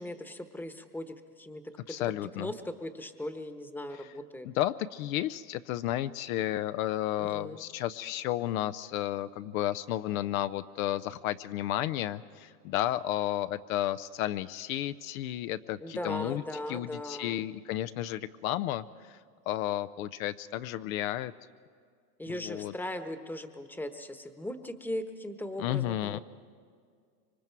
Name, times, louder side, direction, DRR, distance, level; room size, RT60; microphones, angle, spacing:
voice 1, 0.0-1.6 1.9-2.0 2.3-4.5 7.2-7.6 15.8-17.4 22.2-26.2, left 1 dB, 5° left, 8 dB, 1.1 m, -38 dB
voice 2, 1.9-2.5 4.4-16.4 16.7-19.2 19.5-21.3 22.3-22.7 25.6-26.2, left 13 dB, 65° left, 13 dB, 0.7 m, -32 dB
26.0 x 23.5 x 4.7 m, 2.1 s
hypercardioid pair, 115°, 46 cm